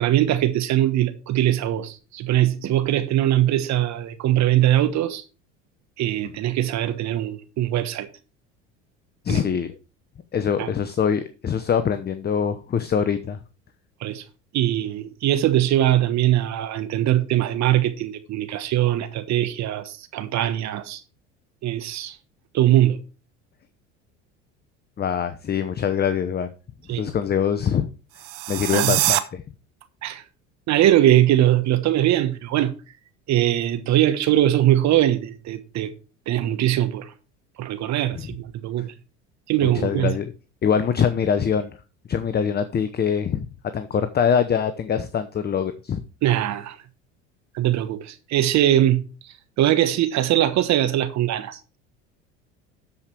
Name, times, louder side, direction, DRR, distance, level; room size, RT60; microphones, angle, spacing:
voice 1, 0.0-5.2 6.0-8.1 9.3-9.4 10.6-10.7 14.0-14.2 14.5-21.0 21.6-22.2 22.5-23.0 26.9-27.0 28.7-28.9 30.0-30.2 30.7-32.7 33.3-35.9 36.3-37.1 37.6-38.9 39.5-40.2 46.2-46.8 47.5-51.8, right 13 dB, 50° right, 1.2 m, -21 dB
voice 2, 9.2-9.7 10.3-13.4 25.0-26.5 27.0-27.9 28.5-29.4 39.6-40.3 40.6-41.7 42.1-43.5 43.7-46.0, left 7 dB, 25° left, 0.8 m, -23 dB
sound 1, 28.1-29.2, right 18 dB, 70° right, 1.0 m, -23 dB
12.5 x 5.1 x 4.5 m
hypercardioid pair, 75°, 36 cm